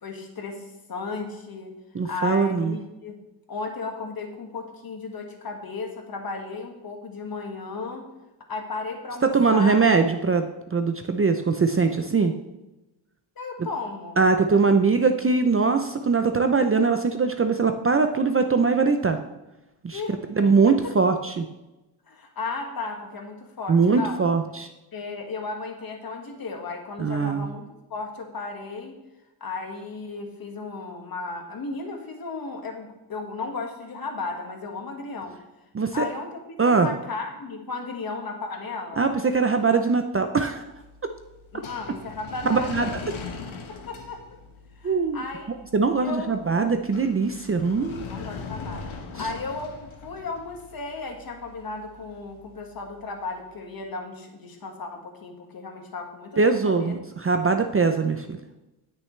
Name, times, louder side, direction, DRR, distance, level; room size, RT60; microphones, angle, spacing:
voice 1, 0.0-1.7 2.0-3.2 3.5-8.1 8.5-9.8 13.3-14.2 14.6-14.7 19.9-20.1 20.6-20.9 22.1-24.2 24.9-27.6 27.9-28.9 29.4-35.4 35.9-39.1 41.5-42.9 43.7-44.2 44.8-45.5 46.0-46.3 48.1-48.9 49.2-56.9, left 3 dB, 50° left, 3 dB, 1.7 m, -35 dB
voice 2, 1.9-2.8 9.3-12.3 14.2-19.2 19.8-20.0 20.3-21.5 23.7-24.7 27.0-27.5 35.7-36.0 36.6-36.9 39.0-40.6 42.5-42.9 44.8-45.2 45.7-48.1 56.4-58.4, right 4 dB, 30° right, 6 dB, 0.5 m, -21 dB
sound 1, 40.5-53.6, left 5 dB, 80° left, 1.3 m, -41 dB
17.5 x 6.5 x 3.2 m, 1.0 s
wide cardioid pair, 145°, 47 cm